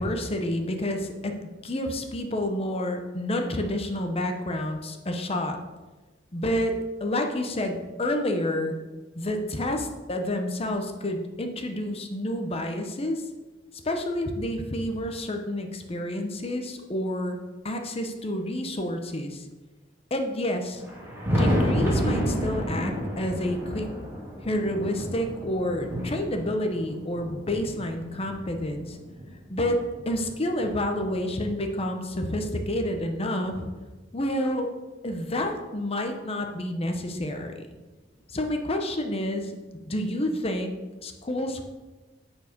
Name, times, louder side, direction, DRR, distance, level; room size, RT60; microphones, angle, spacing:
voice 1, 0.0-1.4 1.6-5.6 6.3-6.7 7.0-8.8 9.1-13.2 13.8-17.4 17.6-19.5 20.1-20.8 21.3-23.9 24.4-29.0 29.5-29.8 30.1-33.7 34.1-34.7 35.0-37.7 38.3-39.6 39.9-40.7 41.0-41.6, left 1 dB, 30° left, 4 dB, 0.8 m, -29 dB
Thunder, 20.7-29.3 29.9-31.7 32.8-32.9 33.5-33.6 35.4-35.5 36.9-37.0 38.6-38.7, equal, 10° right, 2.6 m, -30 dB
9.4 x 4.5 x 5.3 m, 1.2 s
head